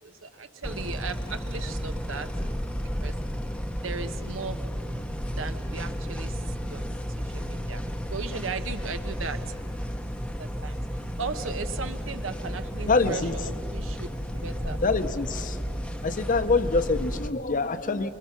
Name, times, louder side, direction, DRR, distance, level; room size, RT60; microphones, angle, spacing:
voice 1, 0.0-2.3 3.0-3.2 3.8-4.6 5.2-9.5 10.4-14.8, right 4 dB, 90° right, 9 dB, 1.0 m, -37 dB
sound 1, 0.6-17.3, equal, 5° left, 0.7 m, -33 dB
voice 2, 12.9-13.3 14.8-15.6 16.0-18.1, left 3 dB, 45° left, 11 dB, 0.8 m, -25 dB
24.5 x 23.5 x 5.8 m, 2.8 s
head